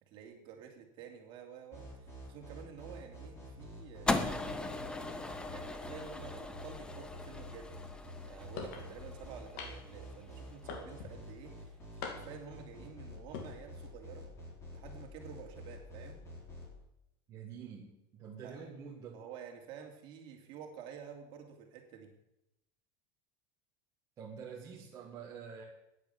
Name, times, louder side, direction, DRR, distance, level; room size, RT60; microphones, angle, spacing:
voice 1, 0.1-4.2 5.5-7.7 8.2-14.3 14.7-16.2 18.4-18.7 19.1-22.1, right 7 dB, 45° right, 2 dB, 2.8 m, -50 dB
sound 1, 1.7-16.7, equal, 25° left, 4.7 m, -48 dB
sound 2, 4.1-10.4, left 2 dB, 5° left, 0.8 m, -39 dB
sound 3, 8.6-8.9 9.6-10.0 10.7-11.2 12.0-12.5 13.2-13.5, left 6 dB, 60° left, 2.3 m, -42 dB
voice 2, 17.3-19.2 24.2-25.6, right 6 dB, 30° right, -2 dB, 1.7 m, -47 dB
10.5 x 9.7 x 8.3 m, 0.87 s
supercardioid pair, 155°, 12 cm